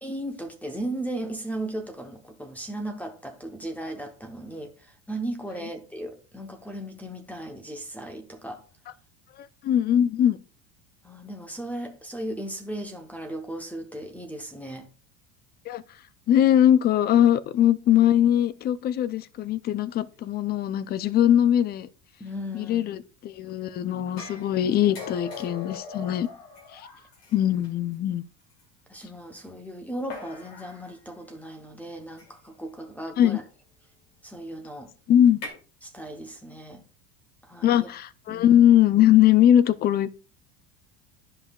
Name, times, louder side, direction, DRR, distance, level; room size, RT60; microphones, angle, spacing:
voice 1, 0.0-8.6 11.0-14.9 22.2-23.0 28.9-33.4 34.2-34.9 35.8-36.8 37.4-37.9 38.3-38.6, right 1 dB, 5° left, 0.8 m, -36 dB
voice 2, 9.4-10.4 15.7-15.8 16.3-21.9 22.5-26.3 26.7-26.9 27.3-28.2 33.2-33.4 35.1-35.4 37.6-40.1, left 11 dB, 30° left, 0.4 m, -21 dB
sound 1, 24.2-27.7 28.6-28.7 30.1-30.9 32.2-32.5 35.2-35.5, left 4 dB, 80° left, 2.6 m, -40 dB
10.5 x 5.4 x 2.3 m
supercardioid pair, 125°, 31 cm